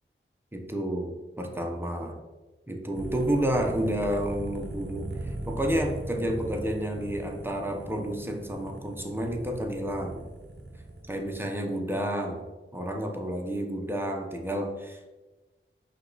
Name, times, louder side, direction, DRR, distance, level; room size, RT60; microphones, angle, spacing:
voice 1, 0.5-2.2 2.7-10.2 11.1-12.4 12.7-15.0, equal, 10° right, 2 dB, 0.7 m, -30 dB
sound 1, 2.9-11.4, right 1 dB, 55° right, 0.7 m, -39 dB
5.1 x 2.4 x 3.9 m, 1.2 s
wide cardioid pair, 40°, 21 cm